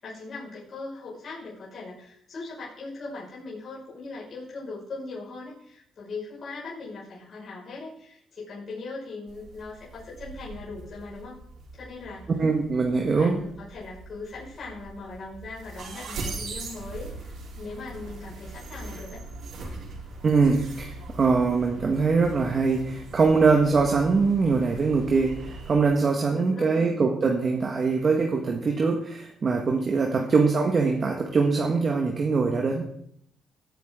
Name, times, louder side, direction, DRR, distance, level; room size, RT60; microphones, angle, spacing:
voice 1, 0.0-11.4 11.7-12.3 13.1-19.2 26.2-26.9 30.0-30.4, left 3 dB, 50° left, -6 dB, 5.7 m, -40 dB
sound 1, 9.3-25.8, right 2 dB, 70° right, 4.3 m, -41 dB
voice 2, 12.4-13.4 20.2-32.8, right 4 dB, 40° right, 1 dB, 1.7 m, -23 dB
18.0 x 9.2 x 3.8 m, 0.68 s
cardioid pair, 90°, 0 cm